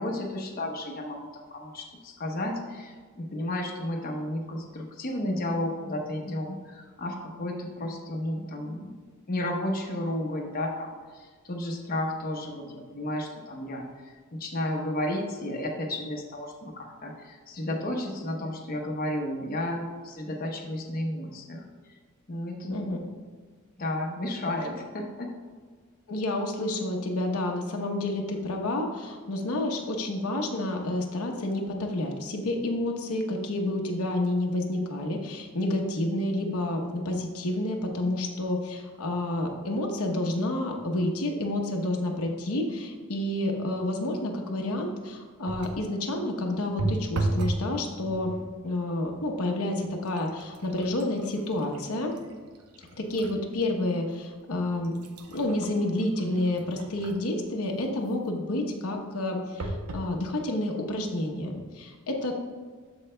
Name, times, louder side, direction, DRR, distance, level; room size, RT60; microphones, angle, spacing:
voice 1, 0.0-9.0 9.3-21.7 22.3-22.9 23.8-25.3, left 1 dB, 40° left, 0 dB, 0.9 m, -32 dB
voice 2, 22.7-23.0 26.1-48.3 48.6-52.1 53.0-54.9 55.3-62.3, left 1 dB, 75° left, 2 dB, 0.9 m, -29 dB
sound 1, 45.4-45.9 46.8-47.7 48.0-48.5 49.3-49.4 49.8-53.4 53.9-54.0 54.6-57.4 59.6-60.1 60.8-60.9 61.1-61.2, right 2 dB, 85° right, 0.8 m, -35 dB
13.0 x 4.8 x 2.2 m, 1.6 s
head